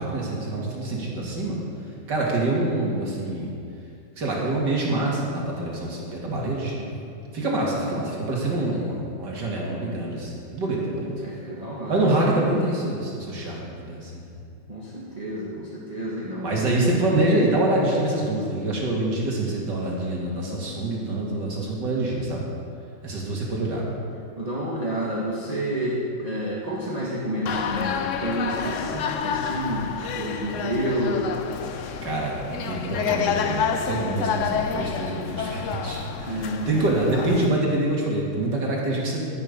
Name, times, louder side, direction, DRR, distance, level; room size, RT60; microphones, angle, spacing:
voice 1, 0.0-1.6 2.1-3.5 4.2-6.7 7.3-11.1 11.9-14.3 16.4-22.5 23.0-23.8 32.0-39.2, right 2 dB, 60° right, -3 dB, 2.9 m, -26 dB
voice 2, 6.2-6.9 8.7-8.8 11.2-11.9 14.7-16.8 24.4-31.3 36.2-36.8, right 1 dB, 20° right, -6 dB, 1.4 m, -30 dB
sound 1, 27.5-37.5, left 7 dB, 80° left, 0.6 m, -29 dB
11.5 x 11.0 x 5.3 m, 2.4 s
omnidirectional pair, 2.1 m